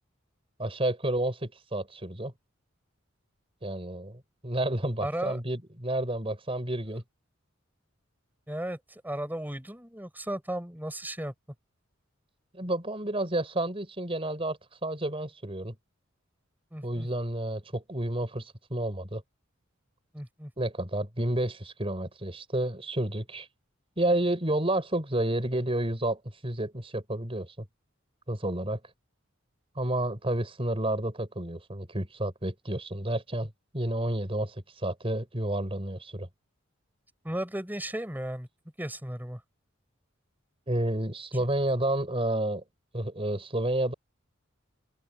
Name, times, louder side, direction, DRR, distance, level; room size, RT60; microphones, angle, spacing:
voice 1, 0.6-2.3 3.6-7.0 12.5-15.7 16.8-19.2 20.6-23.5 24.0-27.5 28.3-28.8 29.8-36.3 40.7-42.6 42.9-43.9, right 1 dB, 30° right, 4.8 m, -30 dB
voice 2, 5.0-5.4 8.5-11.3 16.7-17.1 20.1-20.5 37.2-38.5 38.8-39.4 41.3-41.5, right 1 dB, 10° right, 4.3 m, -35 dB
open air
head